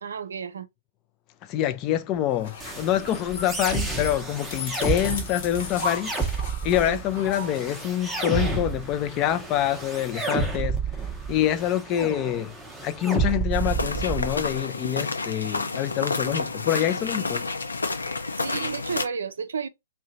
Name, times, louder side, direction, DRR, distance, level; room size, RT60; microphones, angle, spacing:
voice 1, 0.0-0.7 6.8-7.0 18.4-19.7, right 6 dB, 65° right, 0.5 m, -32 dB
voice 2, 1.4-6.1 6.6-10.8 11.3-17.5, left 12 dB, 30° left, 0.4 m, -26 dB
sound 1, 2.3-9.2, left 3 dB, 45° left, 1.0 m, -37 dB
sound 2, 2.6-14.6, right 3 dB, 5° right, 0.8 m, -30 dB
sound 3, 13.5-19.0, left 3 dB, 75° left, 0.6 m, -30 dB
2.7 x 2.2 x 3.9 m
figure-of-eight pair, 115°, 0 cm